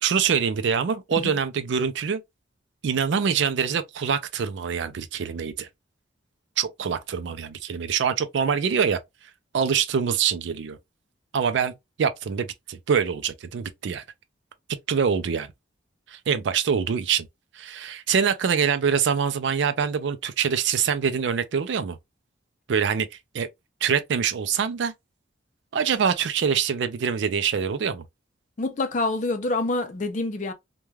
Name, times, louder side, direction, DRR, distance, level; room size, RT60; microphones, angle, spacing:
voice 1, 0.0-2.2 2.8-5.7 6.6-9.0 9.5-10.8 11.3-11.7 12.0-14.0 14.9-15.5 16.1-17.3 17.5-22.0 22.7-23.5 23.8-24.9 25.7-28.0, right 7 dB, 70° right, 0.4 m, -24 dB
voice 2, 28.6-30.5, left 2 dB, 40° left, 0.5 m, -26 dB
3.2 x 2.2 x 2.2 m
head